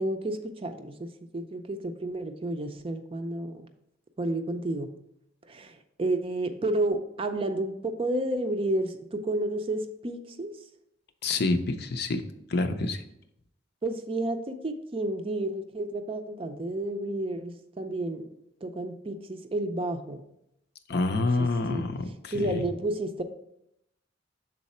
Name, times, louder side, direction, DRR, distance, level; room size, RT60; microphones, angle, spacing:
voice 1, 0.0-3.6 4.2-4.9 5.5-10.5 13.8-18.2 18.6-20.2 21.4-21.8 22.3-23.2, right 1 dB, 30° right, 7 dB, 0.5 m, -31 dB
voice 2, 11.2-12.2 12.5-13.0 20.9-22.7, left 2 dB, 55° left, 8 dB, 0.5 m, -27 dB
6.4 x 4.0 x 4.2 m, 0.80 s
head